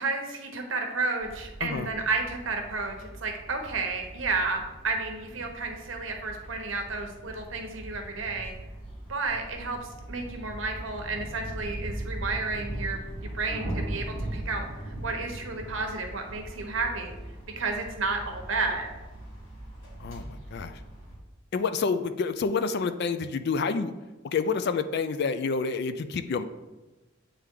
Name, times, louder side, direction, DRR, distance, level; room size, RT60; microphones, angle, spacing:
voice 1, 0.0-8.5 9.1-17.2 17.6-18.9, right 3 dB, 70° right, 3 dB, 1.0 m, -32 dB
sound 1, 1.2-21.2, right 1 dB, 85° left, 1.8 m, -40 dB
voice 2, 20.0-20.8 21.5-23.9 24.2-26.4, left 5 dB, 55° left, 11 dB, 0.4 m, -28 dB
9.0 x 3.4 x 3.7 m, 1.1 s
head